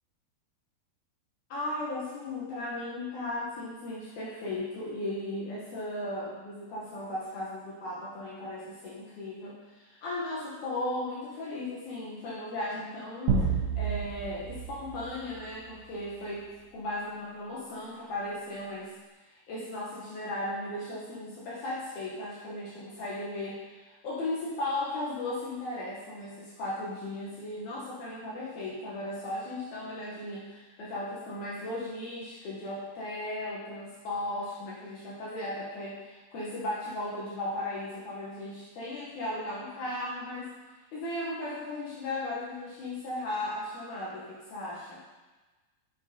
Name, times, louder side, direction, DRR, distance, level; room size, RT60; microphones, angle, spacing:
voice 1, 1.5-18.9 19.3-40.5 40.9-45.0, left 1 dB, 70° left, -7 dB, 2.0 m, -36 dB
sound 1, 13.3-16.1, right 5 dB, 70° right, 2.3 m, -31 dB
6.7 x 5.8 x 2.6 m, 1.2 s
omnidirectional pair, 4.2 m